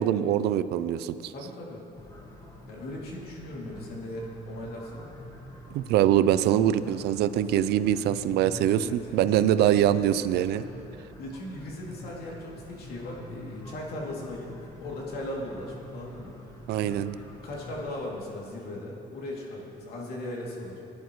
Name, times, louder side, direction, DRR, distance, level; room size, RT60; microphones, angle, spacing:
voice 1, 0.0-1.3 5.7-10.6 16.7-17.2, right 11 dB, 75° right, 14 dB, 0.5 m, -24 dB
voice 2, 1.3-1.8 2.7-5.0 8.8-9.5 11.2-16.3 17.4-20.8, left 1 dB, 65° left, -3 dB, 2.6 m, -38 dB
sound 1, 2.0-17.9, equal, 20° left, 1.7 m, -46 dB
18.0 x 10.5 x 3.1 m, 2.7 s
cardioid pair, 110°, 17 cm